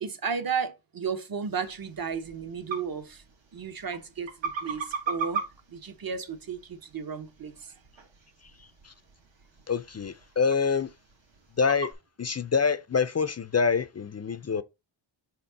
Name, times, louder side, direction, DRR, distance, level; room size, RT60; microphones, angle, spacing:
voice 1, 0.0-3.2 3.5-5.4 5.7-7.7, right 6 dB, 45° right, 1.0 m, -34 dB
sound 1, 1.6-11.9, right 5 dB, 70° right, 1.6 m, -40 dB
voice 2, 9.7-10.9 11.6-11.9 12.2-14.6, left 5 dB, 35° left, 0.4 m, -26 dB
5.6 x 4.4 x 4.0 m
wide cardioid pair, 105°, 47 cm